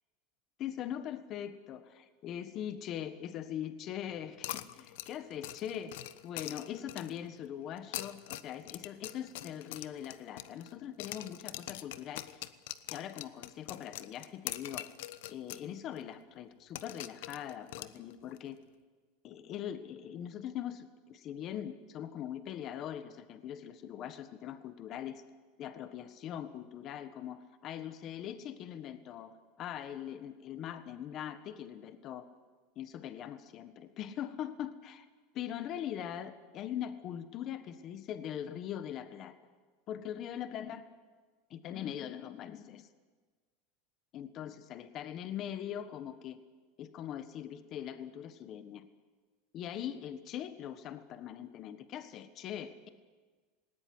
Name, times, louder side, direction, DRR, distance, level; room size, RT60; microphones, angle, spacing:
voice 1, 0.6-12.4 12.9-14.9 15.3-18.6 19.2-25.2 25.6-32.3 32.7-35.1 35.3-39.3 39.9-40.9 41.5-42.9 44.1-46.4 46.8-48.9 49.5-52.9, left 10 dB, 35° left, 12 dB, 1.4 m, -41 dB
sound 1, 4.4-7.3 7.8-10.7 11.0-15.7 16.0-16.1 16.7-18.4, left 15 dB, 75° left, 0.9 m, -43 dB
19.0 x 19.0 x 9.6 m, 1.4 s
supercardioid pair, 150°, 0 cm